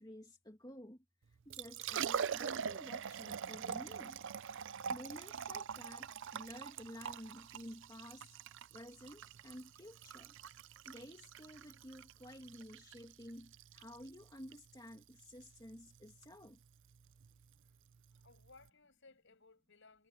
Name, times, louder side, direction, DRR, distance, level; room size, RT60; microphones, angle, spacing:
voice 1, 0.0-4.2 4.9-8.4 8.7-10.4 10.8-16.6, equal, 20° left, 2.4 m, -52 dB
Liquid, 1.3-18.7, right 7 dB, 55° right, 0.5 m, -44 dB
voice 2, 18.1-20.1, left 3 dB, 55° left, 6.1 m, -62 dB
head